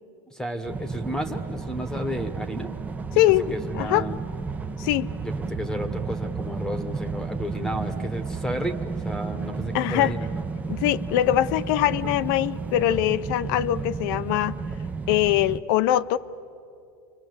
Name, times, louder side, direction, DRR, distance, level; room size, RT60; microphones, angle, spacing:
voice 1, 0.3-2.7 3.1-4.2 5.2-10.3, equal, 5° left, 9 dB, 1.1 m, -32 dB
sound 1, 0.6-15.6, right 4 dB, 10° right, 0.6 m, -32 dB
voice 2, 3.2-4.1 4.8-5.1 9.7-10.2 10.7-14.5 15.1-16.2, left 13 dB, 60° left, 15 dB, 0.7 m, -22 dB
29.5 x 24.5 x 7.9 m, 2.6 s
supercardioid pair, 155°, 12 cm